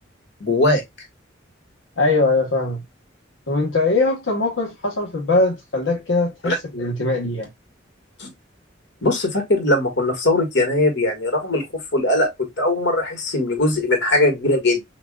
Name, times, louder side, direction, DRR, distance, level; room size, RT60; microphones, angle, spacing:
voice 1, 0.4-0.8 6.4-6.6 8.2-8.3 9.0-11.6 11.9-12.3 12.6-14.8, left 2 dB, 65° left, 1.7 m, -20 dB
voice 2, 2.0-2.8 3.5-7.5, left 2 dB, 80° left, 1.0 m, -21 dB
5.8 x 2.4 x 2.3 m
head